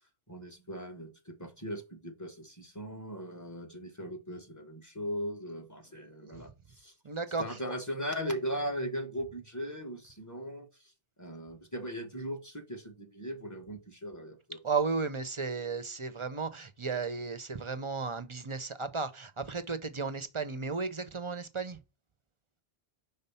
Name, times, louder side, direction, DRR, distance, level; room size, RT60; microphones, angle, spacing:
voice 1, 0.3-6.9 7.4-10.9 11.2-14.6, equal, 15° left, 1.2 m, -38 dB
voice 2, 7.0-7.4 14.6-21.8, right 4 dB, 35° right, 0.5 m, -34 dB
5.5 x 3.8 x 5.5 m
omnidirectional pair, 1.1 m